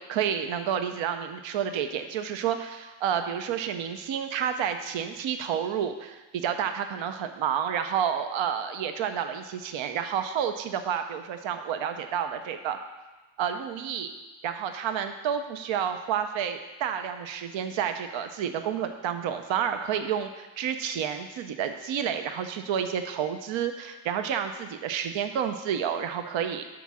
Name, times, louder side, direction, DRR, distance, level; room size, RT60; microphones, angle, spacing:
voice 1, 0.0-12.8 13.4-14.1 14.4-26.6, right 8 dB, 80° right, 7 dB, 0.7 m, -30 dB
9.9 x 3.7 x 6.1 m, 1.1 s
cardioid pair, 60°, 45 cm